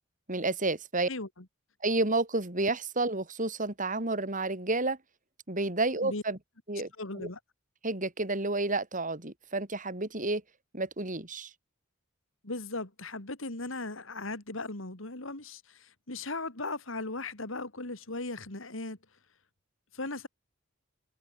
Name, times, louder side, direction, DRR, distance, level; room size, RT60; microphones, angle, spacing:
voice 1, 0.3-1.1 1.8-5.0 5.5-6.4 6.7-6.9 7.1-7.3 7.8-10.4 10.7-11.5, right 2 dB, 40° right, 5.0 m, -30 dB
voice 2, 1.1-1.4 6.0-6.2 7.0-7.4 12.4-19.0 19.9-20.3, left 2 dB, 75° left, 3.4 m, -37 dB
head